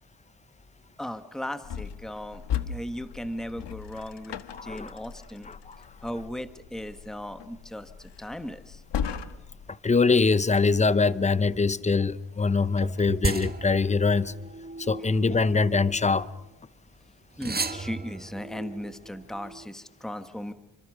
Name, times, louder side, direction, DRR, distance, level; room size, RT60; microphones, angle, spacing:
voice 1, 1.0-5.5 6.0-8.8 17.4-20.5, equal, ahead, 1.4 m, -37 dB
sound 1, 1.6-9.7, left 8 dB, 80° left, 1.5 m, -37 dB
voice 2, 4.5-4.9 5.5-5.8 9.8-14.3 14.8-16.3, left 4 dB, 15° left, 0.8 m, -23 dB
sound 2, 12.8-16.6 17.3-19.7, right 3 dB, 20° right, 1.6 m, -36 dB
30.0 x 25.5 x 6.3 m
wide cardioid pair, 120°, 41 cm